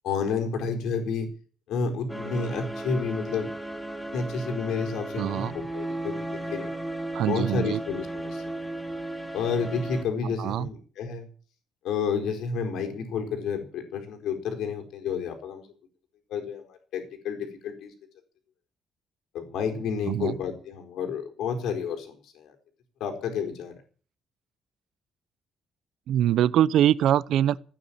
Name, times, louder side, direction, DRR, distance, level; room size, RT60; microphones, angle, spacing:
voice 1, 0.0-1.3 1.7-3.5 4.1-6.7 7.3-8.7 9.3-11.3 11.8-15.7 16.3-17.9 19.3-22.5 23.0-23.8, left 5 dB, 75° left, 4.4 m, -30 dB
sound 1, 2.1-10.0, right 1 dB, ahead, 1.7 m, -35 dB
voice 2, 5.2-5.6 7.1-7.8 10.2-10.7 20.1-20.4 26.1-27.6, right 11 dB, 70° right, 0.7 m, -23 dB
16.0 x 9.8 x 8.7 m
cardioid pair, 155°, 0 cm